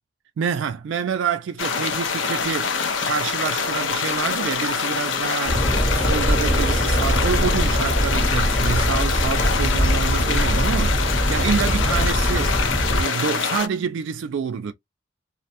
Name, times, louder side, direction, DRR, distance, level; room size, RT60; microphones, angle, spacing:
voice 1, 0.4-5.7 5.9-12.6 12.8-14.7, right 6 dB, 75° right, 0.3 m, -27 dB
sound 1, 1.6-13.7, left 5 dB, 75° left, 0.5 m, -25 dB
sound 2, 5.5-13.0, equal, 25° left, 0.7 m, -22 dB
2.6 x 2.1 x 2.7 m
head